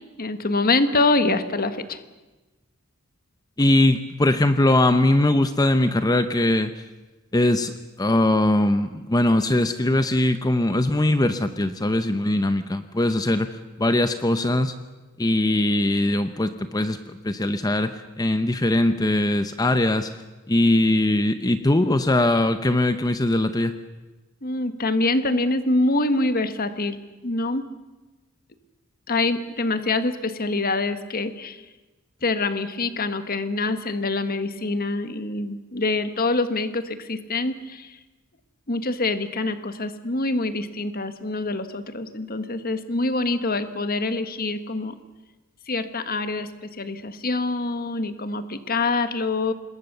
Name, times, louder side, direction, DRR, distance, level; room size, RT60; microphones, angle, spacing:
voice 1, 0.2-2.0 24.4-27.0 27.2-27.7 29.1-31.6 32.2-38.0 38.7-45.0 45.7-49.5, left 2 dB, 40° left, 10 dB, 1.4 m, -25 dB
voice 2, 3.6-6.7 7.3-14.7 15.2-20.1 20.5-23.8, left 1 dB, 15° left, 10 dB, 0.7 m, -21 dB
26.5 x 21.5 x 6.8 m, 1.2 s
head